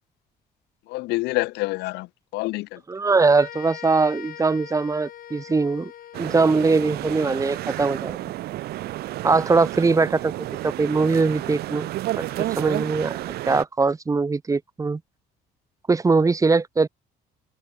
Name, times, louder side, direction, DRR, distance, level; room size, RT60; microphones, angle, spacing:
voice 1, 0.9-2.1 2.3-2.8, left 21 dB, 80° left, 0.4 m, -27 dB
voice 2, 2.9-5.9 6.2-8.3 9.2-10.3 10.6-11.9 12.2-12.3 12.6-13.2 13.5-15.0 15.9-16.9, right 4 dB, 20° right, 1.1 m, -21 dB
sound 1, 3.4-7.0, left 11 dB, 60° left, 3.4 m, -42 dB
sound 2, 6.1-13.6, right 16 dB, 70° right, 0.7 m, -31 dB
cardioid pair, 110°, 17 cm